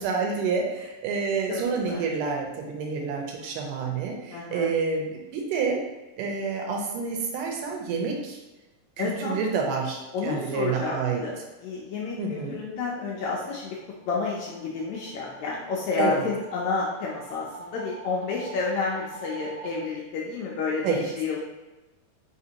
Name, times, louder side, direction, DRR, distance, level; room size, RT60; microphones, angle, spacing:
voice 1, 0.0-5.8 6.2-8.4 9.0-11.2 12.2-12.6 16.0-16.2 20.8-21.1, right 5 dB, 80° right, 1 dB, 2.2 m, -28 dB
voice 2, 4.3-4.7 9.0-9.4 10.1-10.9 11.2-13.8 14.1-21.4, left 4 dB, 75° left, -4 dB, 1.7 m, -30 dB
sound 1, 13.6-19.8, right 3 dB, 60° right, 1.5 m, -45 dB
5.1 x 3.3 x 2.8 m, 1.1 s
omnidirectional pair, 3.8 m